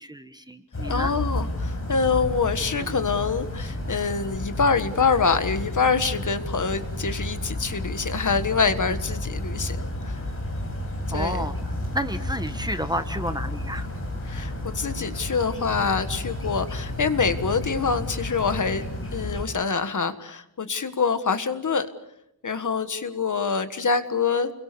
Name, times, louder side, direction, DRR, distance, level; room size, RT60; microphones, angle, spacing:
voice 1, 0.0-1.2 2.8-3.0 8.8-9.0 11.1-13.9, equal, 10° right, 8 dB, 1.2 m, -31 dB
sound 1, 0.7-19.5, left 1 dB, 35° left, 7.8 m, -31 dB
voice 2, 0.8-10.2 11.1-11.4 14.3-21.9 22.4-24.5, left 5 dB, 50° left, 10 dB, 1.6 m, -25 dB
30.0 x 22.5 x 6.9 m, 0.80 s
wide cardioid pair, 160°, 39 cm